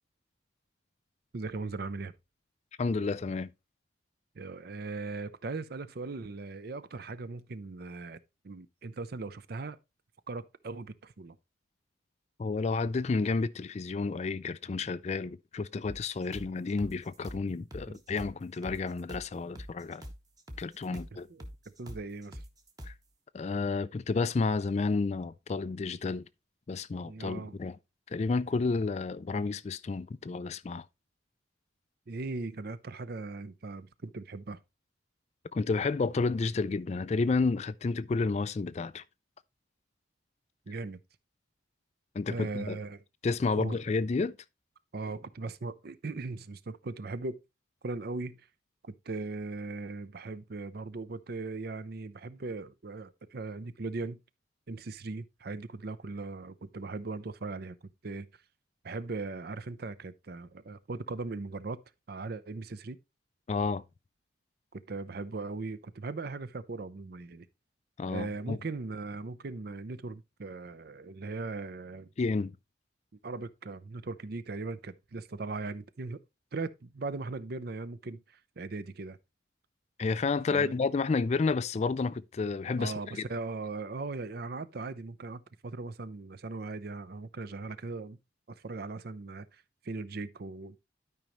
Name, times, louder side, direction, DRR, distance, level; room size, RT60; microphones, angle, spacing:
voice 1, 1.3-2.1 4.4-8.2 8.4-9.8 10.3-11.4 17.9-18.0 21.3-21.5 21.8-22.4 27.1-27.6 32.1-34.6 40.7-41.0 42.3-43.0 43.6-43.8 44.9-47.4 47.8-48.5 48.9-54.2 54.7-57.7 58.0-58.3 58.8-61.8 62.1-63.0 64.7-67.5 68.1-72.1 73.2-76.2 76.5-79.2 80.5-80.7 82.8-88.2 88.5-90.8, right 3 dB, 55° right, 0.6 m, -39 dB
voice 2, 2.8-3.5 12.4-20.0 20.6-21.3 22.9-23.0 23.3-26.2 26.7-27.8 28.1-30.9 35.5-39.0 42.1-42.8 43.2-44.4 63.5-63.8 68.0-68.6 72.2-72.5 80.0-83.2, left 4 dB, 35° left, 0.3 m, -31 dB
sound 1, 15.9-23.1, equal, 20° right, 1.1 m, -46 dB
12.0 x 5.2 x 3.0 m
head